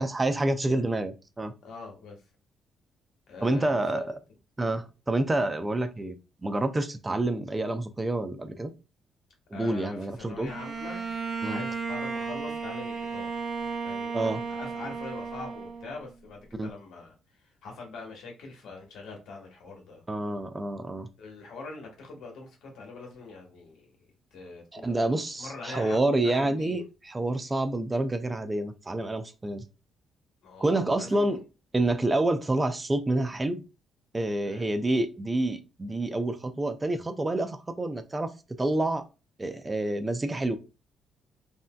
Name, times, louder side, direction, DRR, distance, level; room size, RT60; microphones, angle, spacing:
voice 1, 0.0-1.5 3.4-4.2 4.6-6.1 6.4-8.7 9.5-10.5 11.4-11.6 14.1-14.4 16.6-16.7 20.1-21.1 24.7-29.6 30.6-31.4 31.7-33.6 34.1-38.3 38.6-39.0 39.4-40.6, right 2 dB, 20° right, 0.4 m, -28 dB
voice 2, 1.6-2.2 3.3-4.0 9.5-11.1 11.4-13.3 13.8-17.1 17.6-20.0 21.2-26.8 30.4-31.4 34.4-34.7, left 3 dB, 75° left, 1.2 m, -43 dB
Bowed string instrument, 10.5-16.2, right 5 dB, 40° right, 1.0 m, -34 dB
3.2 x 2.6 x 2.2 m
cardioid pair, 90°, 0 cm